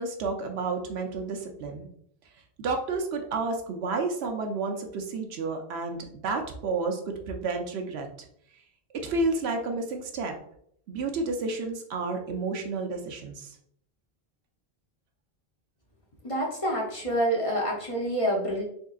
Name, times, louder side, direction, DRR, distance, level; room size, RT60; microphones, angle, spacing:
voice 1, 0.0-1.9 2.6-8.1 9.0-10.4 10.9-13.6, right 3 dB, 90° right, 3 dB, 0.9 m, -31 dB
voice 2, 16.2-18.6, equal, 35° left, -2 dB, 0.8 m, -27 dB
3.7 x 3.6 x 2.3 m, 0.68 s
omnidirectional pair, 1.0 m